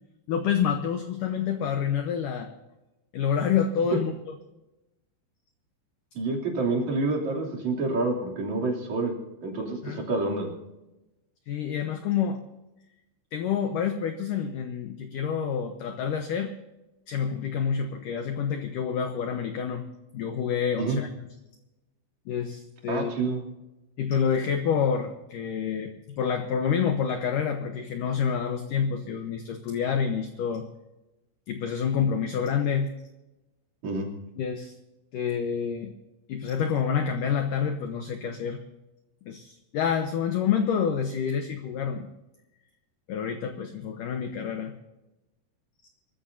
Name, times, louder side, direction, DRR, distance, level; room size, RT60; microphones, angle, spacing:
voice 1, 0.3-2.5 3.1-4.1 9.8-10.1 11.5-12.4 13.3-16.5 17.1-19.8 20.1-21.3 22.3-23.1 24.0-25.9 26.2-30.7 31.5-32.9 34.4-34.7 35.1-35.9 36.3-38.6 39.3-42.1 43.1-44.7, left 7 dB, 75° left, 6 dB, 2.0 m, -28 dB
voice 2, 6.2-9.1 9.4-10.5 20.8-21.0 22.9-23.5 33.8-34.1, right 3 dB, 45° right, -1 dB, 3.9 m, -28 dB
24.5 x 14.0 x 2.7 m, 1.0 s
omnidirectional pair, 5.0 m